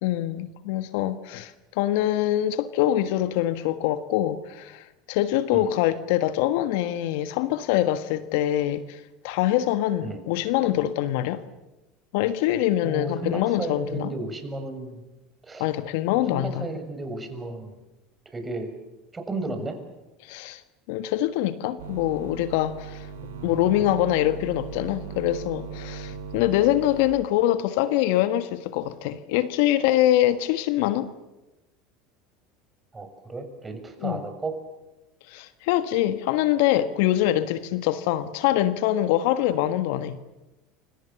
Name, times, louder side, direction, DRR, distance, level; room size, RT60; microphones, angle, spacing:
voice 1, 0.0-11.4 12.1-14.1 15.6-16.7 20.2-20.6 20.9-23.1 23.4-31.1 34.0-34.2 35.3-40.2, left 13 dB, 65° left, 12 dB, 1.5 m, -24 dB
voice 2, 12.8-15.0 15.4-15.7 16.1-17.8 18.3-18.7 19.1-19.8 23.2-23.6 26.1-26.2 32.9-34.6, right 2 dB, 20° right, 7 dB, 6.7 m, -34 dB
sound 1, 21.8-27.1, right 6 dB, 75° right, 6.5 m, -38 dB
29.5 x 26.0 x 7.1 m, 1.0 s
hypercardioid pair, 80°, 0 cm